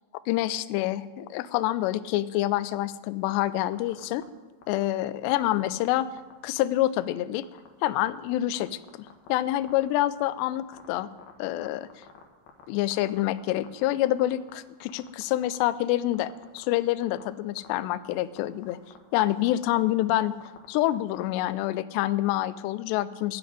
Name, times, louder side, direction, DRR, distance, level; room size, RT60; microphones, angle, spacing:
voice 1, 0.3-4.2 4.7-6.1 6.4-7.5 7.8-8.8 9.3-11.1 11.4-11.9 12.7-18.8 19.1-20.4 20.7-23.4, left 14 dB, 90° left, 13 dB, 2.4 m, -27 dB
sound 1, 3.7-4.2 4.6-4.8 5.4-6.6 6.8-7.0 7.4-7.7 8.1-8.2 8.5-9.3 9.6-12.6 12.9-13.7 13.9-14.5 14.8-15.7 16.1-16.7 17.0-17.2 17.6-18.1 18.4-18.5 18.6-19.0 19.3-21.2, left 10 dB, 65° left, 2.9 m, -48 dB
12.5 x 8.3 x 9.8 m, 1.2 s
omnidirectional pair, 5.6 m